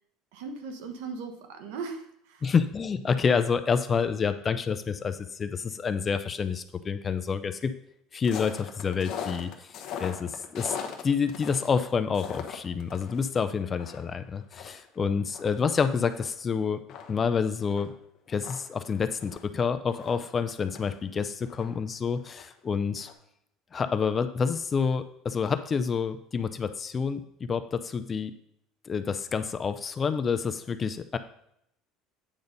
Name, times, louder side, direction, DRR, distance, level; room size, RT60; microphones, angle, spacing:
voice 1, 0.3-2.5, right 4 dB, 90° right, 6 dB, 1.2 m, -38 dB
voice 2, 2.4-7.7 8.1-10.8 11.0-16.8 17.1-17.9 18.3-23.1 23.7-28.3 28.9-31.2, left 6 dB, 25° left, 10 dB, 0.4 m, -28 dB
sound 1, 8.2-13.3 13.6-16.3 16.6-16.7 16.9-21.0 21.4-22.7 23.0-23.1, left 8 dB, 45° left, 1.0 m, -40 dB
8.8 x 4.0 x 5.3 m, 0.75 s
cardioid pair, 150°, 0 cm